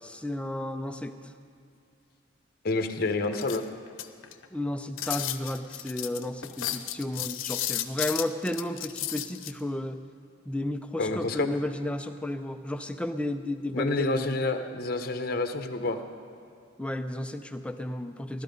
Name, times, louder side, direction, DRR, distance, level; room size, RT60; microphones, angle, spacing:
voice 1, 0.0-1.3 4.5-10.0 10.5-14.4 16.8-18.4, left 1 dB, 5° left, 7 dB, 0.4 m, -33 dB
voice 2, 2.6-3.6 11.0-11.5 13.7-16.0, left 2 dB, 50° left, 7 dB, 0.8 m, -28 dB
sound 1, 3.3-4.5 5.0-9.5, left 12 dB, 90° left, 0.7 m, -33 dB
16.0 x 12.0 x 5.3 m, 2.6 s
head